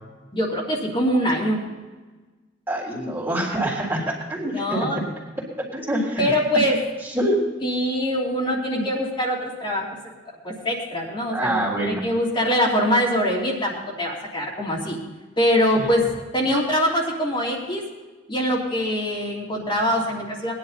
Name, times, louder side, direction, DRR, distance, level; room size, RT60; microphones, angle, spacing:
voice 1, 0.3-1.6 4.5-5.0 6.2-6.8 7.6-9.9 10.4-15.0 15.4-16.0 16.3-17.8 18.3-20.5, equal, 25° left, -5 dB, 3.1 m, -23 dB
voice 2, 2.7-4.9 5.4-6.4 7.0-7.4 8.7-8.8 11.3-12.0 15.7-15.9, right 1 dB, 10° right, -4 dB, 3.7 m, -26 dB
20.0 x 11.0 x 4.2 m, 1.3 s
head